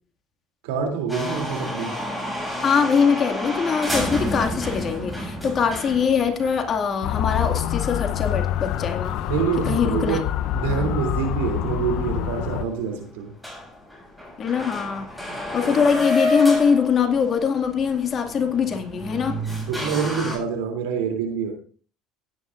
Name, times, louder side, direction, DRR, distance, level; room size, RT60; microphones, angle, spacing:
voice 1, 0.6-1.9 9.3-10.2 10.5-13.3 19.6-21.5, right 6 dB, 80° right, 4 dB, 3.0 m, -26 dB
sound 1, 1.1-9.3 9.5-9.6 10.2-10.3 11.3-11.4 11.5-11.6 12.1-12.2 12.5-12.9 13.2-13.3 13.4-20.4, left 1 dB, ahead, 7.2 m, -30 dB
voice 2, 2.6-9.1 9.7-10.2 10.7-11.0 14.4-15.1 15.5-19.4, left 6 dB, 45° left, 5 dB, 2.2 m, -22 dB
Motor vehicle (road) / Siren, 7.0-12.6, left 10 dB, 65° left, 0.8 m, -26 dB
17.5 x 9.9 x 2.6 m, 0.41 s
hypercardioid pair, 75°, 0 cm